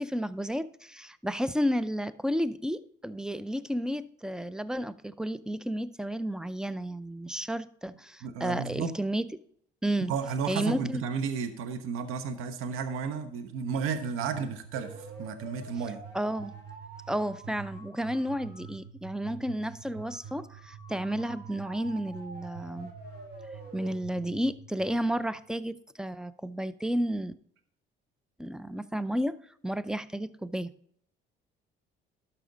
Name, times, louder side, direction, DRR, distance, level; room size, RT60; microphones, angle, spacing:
voice 1, 0.0-9.2 9.8-10.1 10.5-11.0 16.1-16.5 17.1-22.9 23.7-27.3 28.4-29.4 29.6-30.7, equal, 5° right, 0.5 m, -32 dB
voice 2, 8.2-8.9 10.1-16.0, right 6 dB, 80° right, 1.1 m, -33 dB
sound 1, 14.2-25.6, right 5 dB, 50° right, 3.5 m, -46 dB
12.0 x 6.0 x 3.9 m
supercardioid pair, 85°, 21 cm